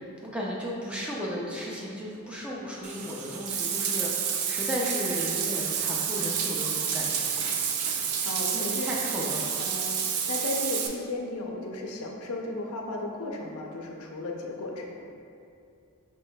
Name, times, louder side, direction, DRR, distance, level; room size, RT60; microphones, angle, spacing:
voice 1, 0.3-7.3 8.5-9.5, equal, 5° right, -4 dB, 0.4 m, -34 dB
Bathtub (filling or washing), 2.8-10.9, right 7 dB, 90° right, 0.4 m, -29 dB
voice 2, 8.2-8.9 9.6-10.0 10.3-14.9, left 2 dB, 75° left, 0 dB, 0.5 m, -34 dB
5.2 x 3.2 x 2.2 m, 2.5 s
head